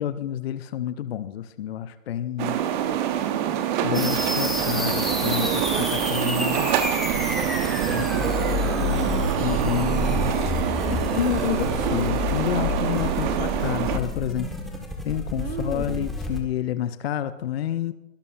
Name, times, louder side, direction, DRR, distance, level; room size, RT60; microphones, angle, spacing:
voice 1, 0.0-2.6 3.8-6.7 7.9-8.1 9.4-10.3 10.9-14.5 15.0-17.9, left 11 dB, 50° left, 13 dB, 0.7 m, -29 dB
sound 1, 2.4-14.0, right 10 dB, 35° right, 1.2 m, -26 dB
sound 2, 3.9-16.4, left 1 dB, ahead, 1.6 m, -29 dB
voice 2, 5.2-5.9 7.3-8.8 9.4-11.3 12.9-13.8 15.4-16.1, right 6 dB, 65° right, 7 dB, 1.8 m, -37 dB
23.0 x 12.0 x 2.6 m, 0.91 s
figure-of-eight pair, 120°, 40 cm